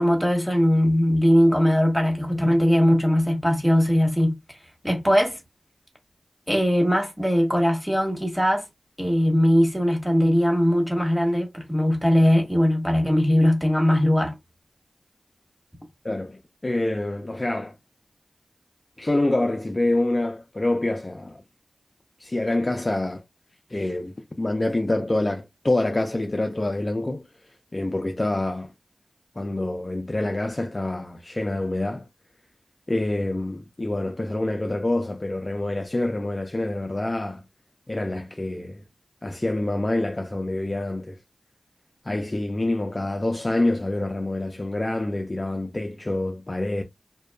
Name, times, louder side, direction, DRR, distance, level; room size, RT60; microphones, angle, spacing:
voice 1, 0.0-4.4 4.8-5.4 6.5-8.7 9.0-14.3, equal, 5° left, 1.2 m, -20 dB
voice 2, 16.0-17.7 19.0-21.4 22.2-23.2 23.7-27.2 27.7-28.7 29.4-32.0 32.9-37.4 37.9-38.8 39.2-41.2 42.0-46.8, left 2 dB, 35° left, 0.4 m, -26 dB
2.6 x 2.3 x 2.2 m
cardioid pair, 45°, 0 cm